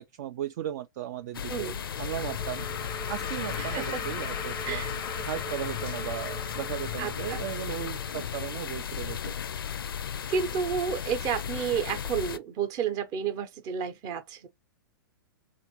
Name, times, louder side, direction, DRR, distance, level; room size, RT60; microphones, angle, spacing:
voice 1, 0.0-4.8 5.2-9.3, right 11 dB, 50° right, 0.4 m, -37 dB
sound 1, 1.3-12.4, left 8 dB, 75° left, 0.4 m, -35 dB
sound 2, 1.5-8.6, left 5 dB, 20° left, 0.5 m, -39 dB
voice 2, 1.5-1.8 3.6-4.0 4.6-4.9 7.0-7.4 10.3-14.5, right 7 dB, 30° right, 0.7 m, -31 dB
3.5 x 2.5 x 2.9 m
hypercardioid pair, 115°, 12 cm